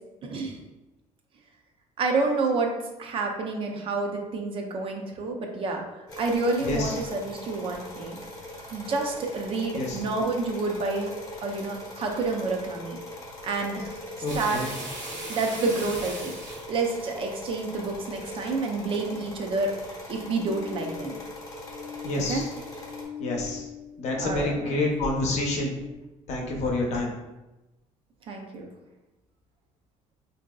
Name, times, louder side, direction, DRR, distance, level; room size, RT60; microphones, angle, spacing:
voice 1, 0.2-0.6 2.0-2.7 3.0-8.2 8.7-11.1 11.4-13.0 13.4-14.0 14.3-14.8 15.3-16.3 16.7-19.7 20.1-21.2 22.1-22.5 24.2-24.9 28.3-28.7, right 3 dB, 45° right, 2 dB, 0.4 m, -29 dB
sound 1, 6.1-23.0, left 1 dB, 25° left, 0.9 m, -41 dB
voice 2, 6.6-7.0 9.7-10.0 14.2-14.7 22.0-22.5 23.2-23.7 24.0-25.7 26.3-27.1, left 2 dB, 55° left, 0 dB, 0.7 m, -28 dB
sound 2, 14.3-17.9 18.4-18.8 19.2-19.3 19.8-20.3 20.9-21.0 21.4-21.5 21.7-22.0 22.6-22.8 23.5-23.6, right 2 dB, 65° right, 1.1 m, -38 dB
sound 3, 20.1-25.9, left 8 dB, 10° left, 0.5 m, -41 dB
3.8 x 2.6 x 2.2 m, 1.0 s
cardioid pair, 145°, 13 cm